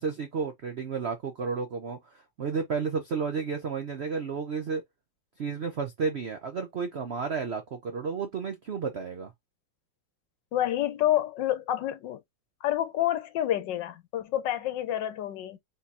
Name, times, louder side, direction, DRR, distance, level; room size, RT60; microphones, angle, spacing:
voice 1, 0.0-4.8 5.4-9.3, right 5 dB, 65° right, 0.6 m, -32 dB
voice 2, 10.5-12.2 12.6-15.6, left 12 dB, 75° left, 1.3 m, -28 dB
3.8 x 2.7 x 4.1 m
omnidirectional pair, 2.0 m